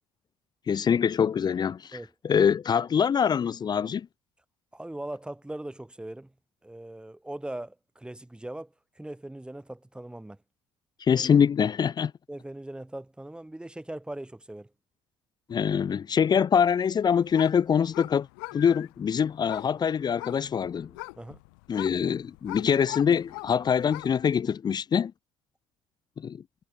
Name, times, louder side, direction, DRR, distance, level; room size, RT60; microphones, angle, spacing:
voice 1, 0.7-2.0 2.2-4.1 11.0-12.1 15.5-18.3 18.5-20.9 21.7-25.1 26.2-26.4, left 7 dB, 40° left, 1.2 m, -24 dB
voice 2, 4.7-6.3 6.6-10.4 12.3-14.7 21.2-21.4, right 1 dB, 10° right, 2.0 m, -40 dB
sound 1, 17.0-24.3, left 30 dB, 80° left, 5.2 m, -43 dB
hypercardioid pair, 65°, 11 cm